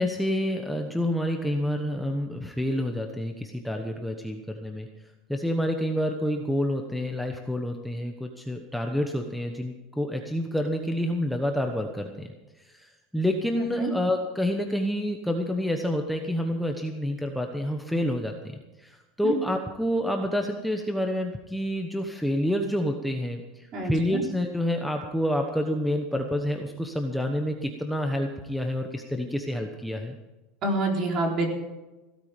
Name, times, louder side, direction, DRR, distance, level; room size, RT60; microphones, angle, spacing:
voice 1, 0.0-4.9 5.3-12.3 12.7-30.1, equal, ahead, 3 dB, 1.1 m, -28 dB
voice 2, 13.5-13.9 19.2-19.4 23.7-24.2 30.6-31.4, right 2 dB, 40° right, 1 dB, 4.1 m, -27 dB
16.5 x 13.0 x 5.1 m, 1.1 s
supercardioid pair, 150°, 0 cm